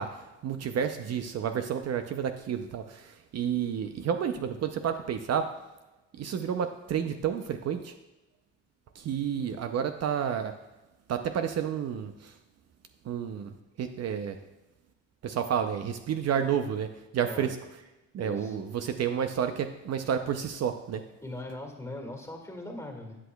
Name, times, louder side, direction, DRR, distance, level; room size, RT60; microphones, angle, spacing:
voice 1, 0.0-5.5 6.1-7.9 8.9-10.6 11.1-12.4 13.0-14.4 15.2-16.9 17.1-17.6 18.1-21.0, right 8 dB, 55° right, 7 dB, 0.6 m, -30 dB
voice 2, 18.2-18.6 21.2-23.2, left 1 dB, 10° left, 2 dB, 1.9 m, -40 dB
12.5 x 8.4 x 2.3 m, 1.0 s
cardioid pair, 90°, 30 cm